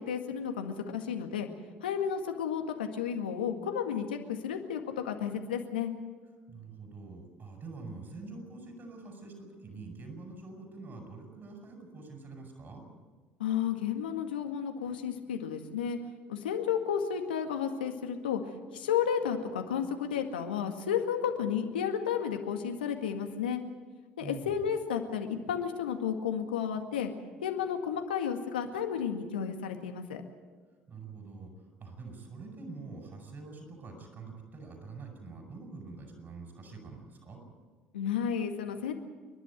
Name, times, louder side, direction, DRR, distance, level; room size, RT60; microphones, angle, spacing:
voice 1, 0.0-1.5 1.8-5.9 13.4-16.0 16.3-23.6 24.2-27.1 27.4-30.2 37.9-38.9, left 8 dB, 85° left, 5 dB, 1.9 m, -32 dB
voice 2, 6.5-12.9 24.2-24.5 30.9-37.4, right 3 dB, 40° right, 3 dB, 7.8 m, -45 dB
29.0 x 12.0 x 9.2 m, 1.5 s
hypercardioid pair, 60°, 5 cm